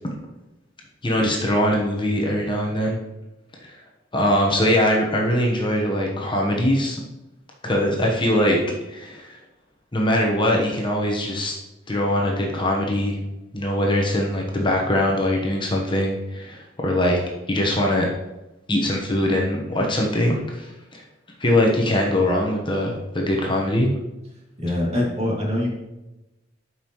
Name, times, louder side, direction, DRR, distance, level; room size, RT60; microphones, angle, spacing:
voice 1, 1.0-3.0 3.6-3.8 4.1-7.0 7.6-8.6 8.9-9.4 9.9-11.6 11.9-13.2 13.5-17.2 17.5-18.1 18.7-21.0 21.4-23.9, left 1 dB, 25° left, -1 dB, 1.1 m, -22 dB
voice 2, 24.6-25.7, left 1 dB, 35° right, -3 dB, 2.5 m, -23 dB
12.5 x 5.5 x 3.1 m, 0.99 s
head